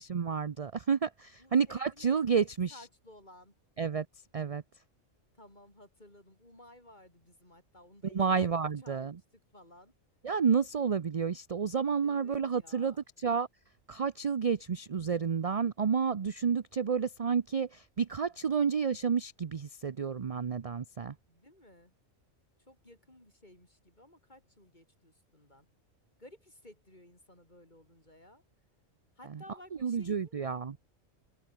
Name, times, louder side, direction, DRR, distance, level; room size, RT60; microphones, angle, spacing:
voice 1, 0.0-2.7 3.8-4.1 4.3-4.6 8.1-9.1 10.2-13.5 13.9-21.1 29.8-30.7, right 6 dB, 40° right, 0.5 m, -30 dB
voice 2, 1.4-2.4 2.7-3.5 5.3-9.1 9.5-9.9 12.0-13.0 21.3-21.9 22.7-25.7 26.2-28.4 29.2-30.6, left 1 dB, 35° left, 7.3 m, -56 dB
omnidirectional pair, 1.4 m